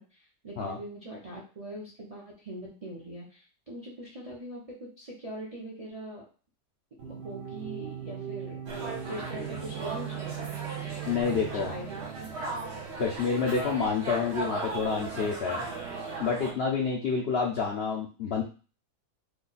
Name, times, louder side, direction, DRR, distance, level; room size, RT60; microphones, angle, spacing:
voice 1, 0.0-6.2 7.0-10.6 11.3-12.3, right 1 dB, 35° right, -4 dB, 0.5 m, -42 dB
sound 1, 7.0-16.2, right 9 dB, 85° right, 0.5 m, -41 dB
sound 2, 8.7-16.5, right 3 dB, 55° right, 0.9 m, -37 dB
voice 2, 11.0-11.7 13.0-15.7 16.2-18.4, left 5 dB, 65° left, -1 dB, 0.6 m, -28 dB
3.2 x 2.2 x 3.9 m, 0.36 s
omnidirectional pair, 1.7 m